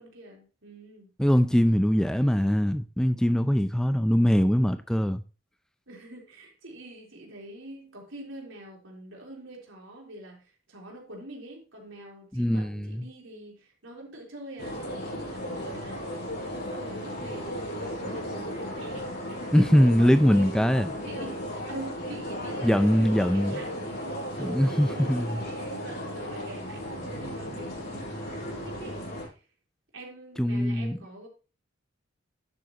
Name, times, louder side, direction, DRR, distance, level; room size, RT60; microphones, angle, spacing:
voice 1, 0.0-1.1 5.9-16.1 16.7-20.4 21.0-29.4 29.9-31.3, right 1 dB, 80° right, 3.6 m, -45 dB
voice 2, 1.2-5.2 12.3-13.1 19.5-20.9 22.6-23.6 24.4-25.4 30.4-31.0, equal, 5° left, 0.4 m, -22 dB
sound 1, 14.6-29.3, equal, 50° left, 6.1 m, -35 dB
11.5 x 7.9 x 2.9 m
head